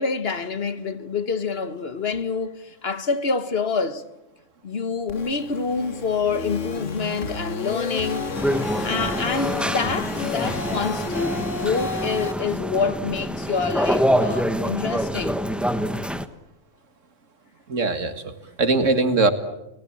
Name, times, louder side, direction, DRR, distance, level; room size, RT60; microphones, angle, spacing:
voice 1, 0.0-4.0 4.6-8.3 8.8-15.4, left 5 dB, 55° left, 1.4 m, -27 dB
sound 1, 5.1-12.3, left 4 dB, 75° left, 2.0 m, -31 dB
sound 2, 8.3-16.3, equal, ahead, 0.9 m, -26 dB
voice 2, 17.7-19.3, right 3 dB, 75° right, 2.2 m, -21 dB
30.0 x 18.5 x 8.8 m
omnidirectional pair, 1.3 m